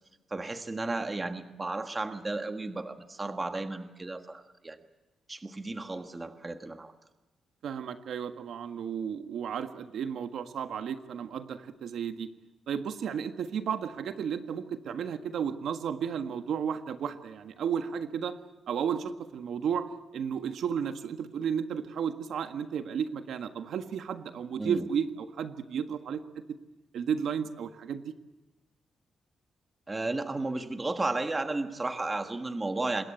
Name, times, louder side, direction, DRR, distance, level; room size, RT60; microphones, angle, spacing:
voice 1, 0.3-4.8 5.3-6.9 24.6-24.8 29.9-33.0, right 2 dB, 15° right, 7 dB, 1.4 m, -33 dB
voice 2, 7.6-12.3 12.7-18.4 18.7-19.9 20.1-26.2 26.9-28.0, right 7 dB, 70° right, 7 dB, 1.6 m, -33 dB
26.5 x 21.5 x 8.4 m, 1.1 s
wide cardioid pair, 170°, 0 cm